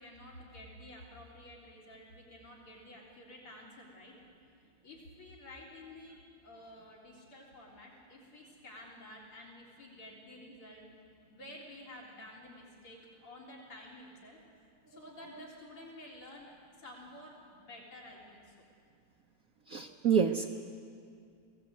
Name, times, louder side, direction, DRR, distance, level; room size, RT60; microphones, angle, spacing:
voice 1, 0.0-4.2 4.8-10.8 11.3-14.4 14.9-18.6, left 1 dB, 80° left, -1 dB, 4.7 m, -51 dB
voice 2, 19.7-20.5, right 7 dB, 60° right, 3 dB, 1.0 m, -28 dB
23.0 x 17.5 x 8.2 m, 2.3 s
omnidirectional pair, 2.4 m